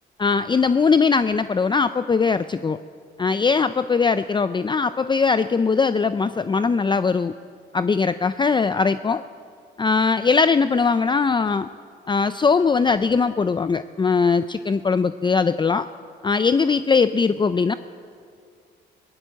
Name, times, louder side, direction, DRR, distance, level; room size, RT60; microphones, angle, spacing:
voice 1, 0.2-2.8 3.2-7.3 7.7-9.2 9.8-11.7 12.1-15.9 16.2-17.7, left 5 dB, 25° left, 12 dB, 0.5 m, -20 dB
21.0 x 16.5 x 8.2 m, 2.3 s
cardioid pair, 90°, 20 cm